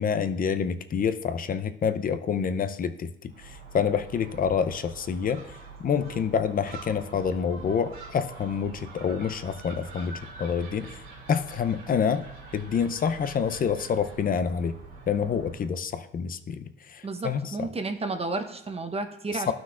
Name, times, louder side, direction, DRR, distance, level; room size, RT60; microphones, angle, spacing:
voice 1, 0.0-5.5 5.8-11.0 11.3-12.3 12.5-14.7 15.1-17.6 19.3-19.5, left 7 dB, 45° left, 10 dB, 0.6 m, -27 dB
Gull seagull, 3.3-15.7, right 4 dB, 85° right, 2.6 m, -45 dB
voice 2, 17.0-19.5, right 3 dB, 30° right, 6 dB, 0.9 m, -32 dB
13.5 x 6.0 x 2.5 m, 0.76 s
cardioid pair, 90°, 20 cm